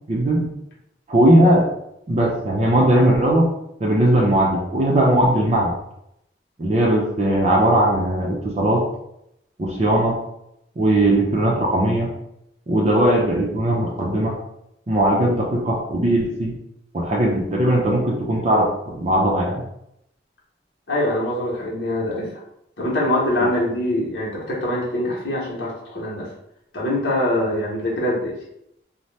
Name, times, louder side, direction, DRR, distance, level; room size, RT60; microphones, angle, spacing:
voice 1, 0.1-0.5 1.1-1.7 2.1-3.5 3.8-5.7 6.6-8.8 9.6-10.2 10.8-12.1 12.7-14.3 14.9-16.5 16.9-19.6, right 1 dB, 35° right, -2 dB, 0.5 m, -18 dB
voice 2, 20.9-22.4 22.8-26.3 26.7-28.4, left 1 dB, 75° left, -4 dB, 0.9 m, -23 dB
2.7 x 2.0 x 3.1 m, 0.79 s
head